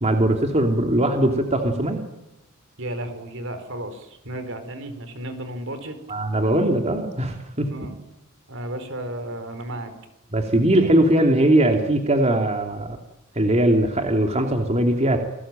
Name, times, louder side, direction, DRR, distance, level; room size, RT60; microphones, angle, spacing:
voice 1, 0.0-2.0 6.1-7.7 10.3-13.0 13.3-15.2, right 1 dB, 30° right, 4 dB, 2.9 m, -20 dB
voice 2, 2.8-6.0 7.7-7.9 8.5-9.9, right 1 dB, 65° right, 10 dB, 4.5 m, -33 dB
29.0 x 20.0 x 9.1 m, 0.91 s
head